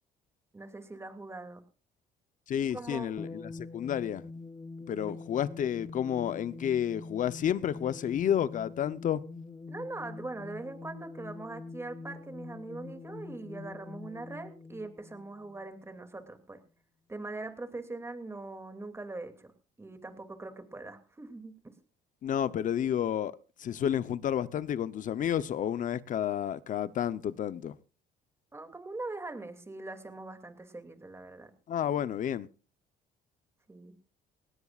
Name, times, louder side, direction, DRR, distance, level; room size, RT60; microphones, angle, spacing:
voice 1, 0.5-1.6 2.7-3.1 5.0-5.1 9.7-16.6 17.1-19.5 19.8-21.7 28.5-31.5 33.7-33.9, right 2 dB, 15° right, 2.7 m, -42 dB
voice 2, 2.5-4.2 4.9-9.2 22.2-27.7 31.7-32.5, left 9 dB, 50° left, 0.9 m, -31 dB
sound 1, 3.2-16.0, left 3 dB, 20° left, 0.8 m, -45 dB
19.5 x 17.5 x 2.5 m
cardioid pair, 110°, 17 cm